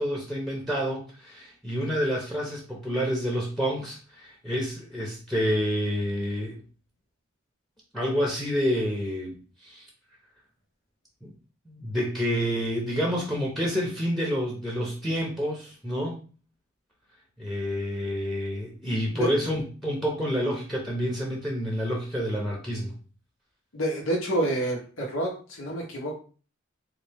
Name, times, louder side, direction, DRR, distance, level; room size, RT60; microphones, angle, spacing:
voice 1, 0.0-6.6 7.9-9.4 9.6-9.9 11.2-11.3 11.7-16.2 17.4-22.9, equal, ahead, -1 dB, 0.7 m, -28 dB
voice 2, 23.7-26.1, right 1 dB, 90° left, -2 dB, 1.1 m, -28 dB
4.1 x 2.5 x 3.4 m, 0.38 s
head